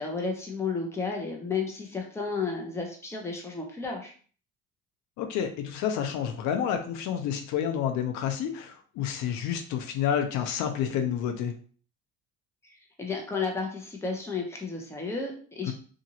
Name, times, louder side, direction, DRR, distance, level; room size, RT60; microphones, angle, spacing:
voice 1, 0.0-4.1 12.6-15.7, left 4 dB, 10° left, 0 dB, 0.7 m, -32 dB
voice 2, 5.2-11.5 15.7-15.8, left 9 dB, 70° left, 5 dB, 0.5 m, -29 dB
2.9 x 2.5 x 2.8 m, 0.43 s
cardioid pair, 115°, 30 cm